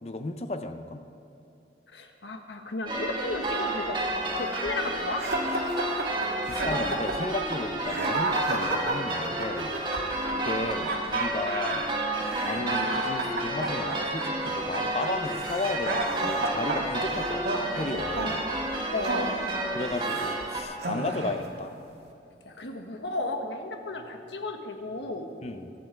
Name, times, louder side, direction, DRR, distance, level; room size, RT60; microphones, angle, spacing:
voice 1, 0.0-1.0 6.5-9.7 10.3-11.9 12.4-17.4 17.7-18.4 19.7-21.8 25.4-25.7, left 2 dB, 35° left, 7 dB, 0.7 m, -34 dB
voice 2, 1.9-5.2 18.9-19.3 22.4-25.3, left 2 dB, 85° left, 4 dB, 1.4 m, -34 dB
sound 1, 2.9-20.6, right 1 dB, 25° right, 1.9 m, -31 dB
sound 2, 5.2-20.4 20.8-21.5, right 2 dB, 75° right, 1.8 m, -32 dB
23.0 x 8.8 x 4.6 m, 2.8 s
head